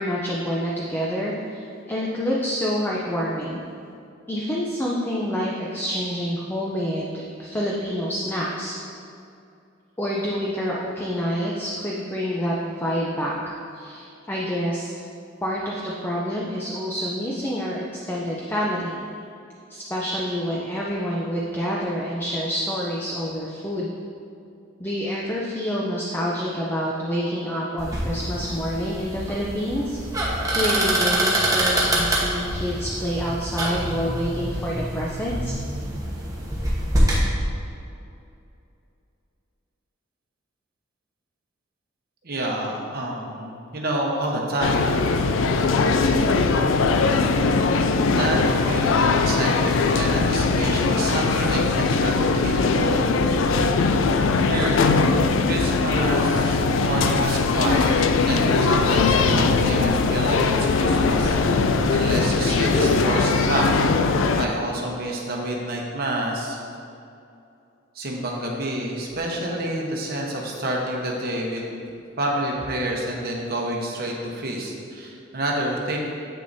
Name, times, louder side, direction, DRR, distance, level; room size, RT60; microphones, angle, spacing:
voice 1, 0.0-3.6 4.3-8.8 10.0-13.4 13.7-14.9 15.4-19.0 19.7-23.9 24.8-30.0 30.5-35.5, equal, 10° left, -4 dB, 0.5 m, -27 dB
sound 1, 27.8-37.2, right 1 dB, 15° right, 1.1 m, -25 dB
voice 2, 42.2-44.9 48.1-53.0 54.4-54.9 55.4-60.4 60.8-63.7 64.3-66.6 67.9-71.6 72.2-76.0, right 1 dB, 50° right, -1 dB, 1.0 m, -28 dB
sound 2, 44.6-64.5, left 4 dB, 65° left, 0.4 m, -20 dB
8.5 x 6.3 x 2.7 m, 2.6 s
head